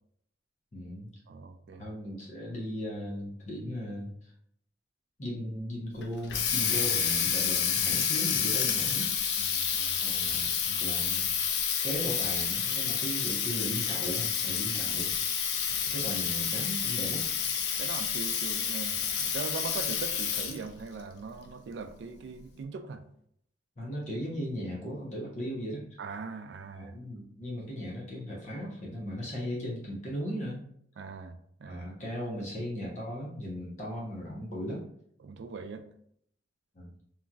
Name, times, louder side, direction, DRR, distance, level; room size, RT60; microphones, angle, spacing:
voice 1, 0.7-1.1 1.8-4.3 5.2-9.3 10.0-11.3 11.8-15.1 15.9-17.2 23.8-26.0 26.7-30.6 31.7-34.8 36.7-36.9, equal, 40° left, 0.7 m, -37 dB
voice 2, 1.3-1.9 9.4-10.0 17.8-23.0 26.0-26.9 31.0-31.3 31.6-31.9 35.2-35.9, right 4 dB, 65° right, 0.3 m, -41 dB
Water tap faucet, 6.0-20.7, left 7 dB, 60° left, 0.4 m, -29 dB
2.9 x 2.6 x 2.3 m
head